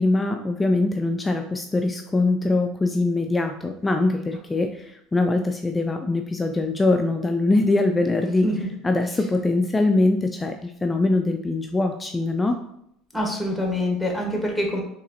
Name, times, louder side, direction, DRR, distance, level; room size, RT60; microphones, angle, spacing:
voice 1, 0.0-8.5 8.8-12.6, left 2 dB, 20° left, 5 dB, 0.3 m, -22 dB
voice 2, 13.1-14.8, left 1 dB, ahead, 0 dB, 1.2 m, -25 dB
3.9 x 2.9 x 2.7 m, 0.73 s
hypercardioid pair, 85°, 0 cm